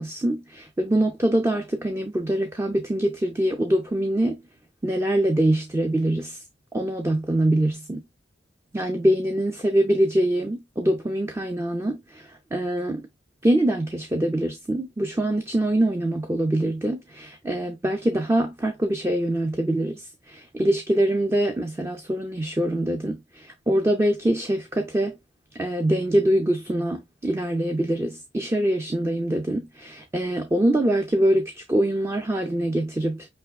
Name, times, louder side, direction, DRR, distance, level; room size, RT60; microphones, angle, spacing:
voice 1, 0.0-4.4 4.8-6.4 6.7-8.0 8.7-13.1 13.4-25.2 25.5-33.3, right 1 dB, 15° right, 0.4 m, -24 dB
5.2 x 3.4 x 2.2 m
head